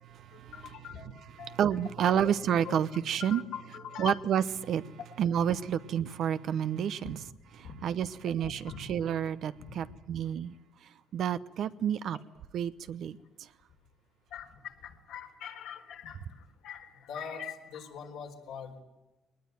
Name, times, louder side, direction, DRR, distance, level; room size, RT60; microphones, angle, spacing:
voice 1, 0.3-1.6 2.0-2.3 2.6-2.8 3.2-4.2 7.0-7.2 7.6-7.8 8.4-9.0 9.6-10.0 12.1-12.2 14.3-18.8, left 7 dB, 80° left, 4.2 m, -43 dB
voice 2, 1.6-3.4 4.0-4.9 5.2-7.2 7.6-10.5 11.1-12.2 12.5-13.2, right 9 dB, 65° right, 0.9 m, -29 dB
21.0 x 20.0 x 9.3 m
supercardioid pair, 80°, 0 cm